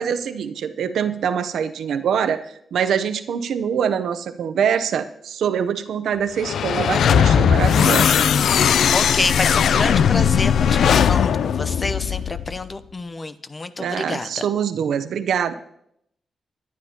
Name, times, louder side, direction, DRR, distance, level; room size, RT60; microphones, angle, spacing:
voice 1, 0.0-8.2 13.8-15.5, right 7 dB, 85° right, 10 dB, 0.7 m, -24 dB
sound 1, 6.4-12.6, left 8 dB, 80° left, 0.4 m, -18 dB
voice 2, 8.9-14.4, left 3 dB, 35° left, 12 dB, 0.7 m, -28 dB
22.5 x 9.9 x 2.9 m, 0.75 s
cardioid pair, 85°, 0 cm